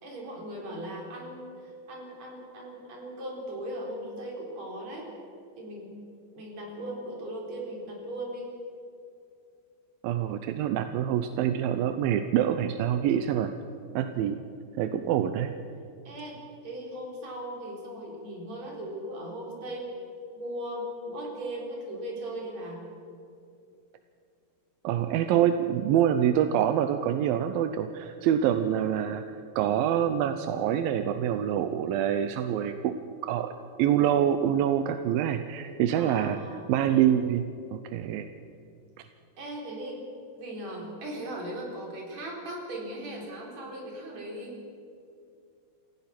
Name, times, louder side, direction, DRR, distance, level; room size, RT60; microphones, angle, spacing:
voice 1, 0.0-5.1 5.6-5.9 6.3-8.5 16.1-19.9 20.4-22.9 36.0-36.8 39.4-40.0 40.3-44.6, right 1 dB, 45° right, -2 dB, 5.1 m, -38 dB
voice 2, 10.0-13.5 13.9-14.4 14.8-15.5 24.8-32.9 33.2-33.5 33.8-36.4 36.7-37.4 37.7-38.3, right 10 dB, 75° right, 8 dB, 2.2 m, -26 dB
27.5 x 16.0 x 6.0 m, 2.5 s
omnidirectional pair, 4.7 m